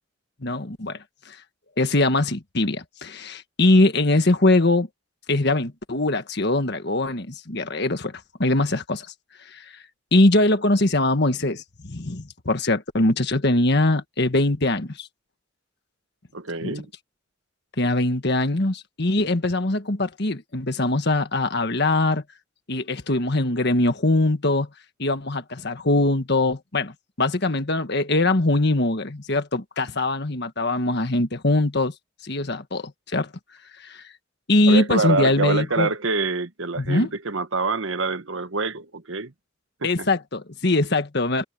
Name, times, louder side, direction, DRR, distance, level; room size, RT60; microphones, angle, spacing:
voice 1, 0.4-1.4 1.8-4.9 5.3-9.1 9.5-9.7 10.1-15.1 16.6-16.7 17.8-22.2 22.7-24.7 25.0-31.9 32.2-33.3 33.8-34.0 34.5-35.9 36.8-37.1 39.8-41.4, left 2 dB, 55° left, 1.6 m, -22 dB
voice 2, 16.3-16.9 34.7-39.3 39.8-40.1, right 3 dB, 75° right, 1.2 m, -26 dB
head